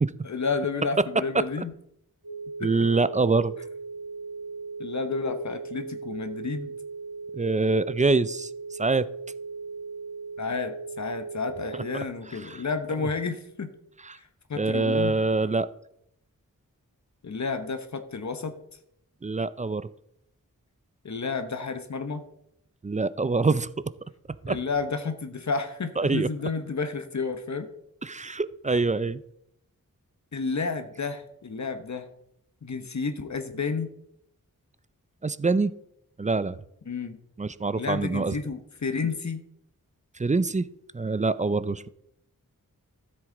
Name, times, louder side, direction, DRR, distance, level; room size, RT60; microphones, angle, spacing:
voice 1, 0.2-1.7 2.6-2.7 4.8-6.7 10.4-13.7 14.1-15.2 17.2-18.5 21.0-22.2 24.5-27.7 30.3-32.1 32.6-33.9 36.9-37.2 37.7-39.4, left 4 dB, 55° left, 0.9 m, -31 dB
sound 1, 2.2-12.0, right 4 dB, 85° right, 1.5 m, -38 dB
voice 2, 2.6-3.5 7.3-8.5 8.8-9.1 12.5-12.6 14.0-14.2 14.6-15.7 19.2-19.9 22.8-23.7 24.4-24.6 26.0-26.3 28.0-29.2 35.2-35.7 36.2-36.6 37.4-38.4 40.2-40.7 40.9-41.9, right 3 dB, 20° right, 0.4 m, -25 dB
13.0 x 7.8 x 3.8 m
wide cardioid pair, 90°, 33 cm